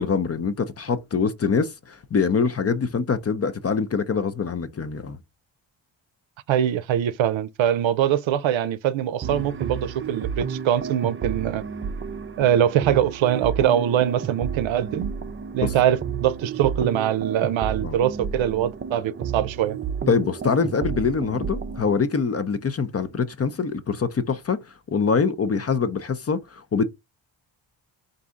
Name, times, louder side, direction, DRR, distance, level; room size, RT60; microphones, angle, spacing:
voice 1, 0.0-5.2 15.6-15.7 17.8-18.0 20.1-24.6 24.9-26.8, left 5 dB, 30° left, 0.6 m, -24 dB
voice 2, 6.5-11.6 12.4-15.1 15.5-19.8, right 10 dB, 75° right, 0.6 m, -23 dB
sound 1, 9.2-22.0, right 7 dB, 30° right, 0.5 m, -31 dB
4.0 x 2.6 x 3.6 m
cardioid pair, 75°, 47 cm